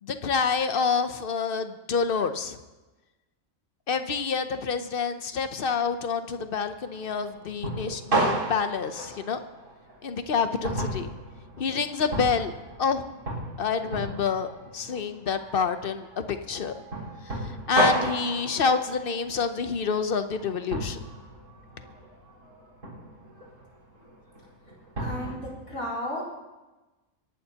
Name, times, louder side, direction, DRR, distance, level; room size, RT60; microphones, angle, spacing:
voice 1, 0.0-2.6 3.9-9.4 10.0-11.1 11.6-12.5 12.8-13.1 13.6-16.7 17.2-21.0, left 5 dB, 50° left, 9 dB, 0.8 m, -28 dB
sound 1, 6.8-25.3, right 1 dB, 75° right, 4.9 m, -33 dB
voice 2, 25.0-26.2, equal, 70° left, -4 dB, 4.4 m, -33 dB
26.0 x 11.5 x 2.9 m, 1.1 s
omnidirectional pair, 1.5 m